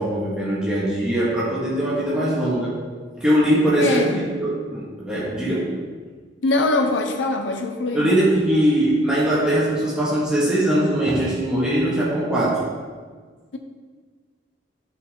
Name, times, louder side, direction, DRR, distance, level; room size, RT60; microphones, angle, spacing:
voice 1, 0.0-2.8 3.2-5.7 7.9-12.6, right 1 dB, 5° right, -9 dB, 1.8 m, -21 dB
voice 2, 3.8-4.3 6.4-8.1 13.5-13.6, left 2 dB, 80° left, 4 dB, 0.7 m, -22 dB
11.0 x 5.4 x 3.8 m, 1.5 s
head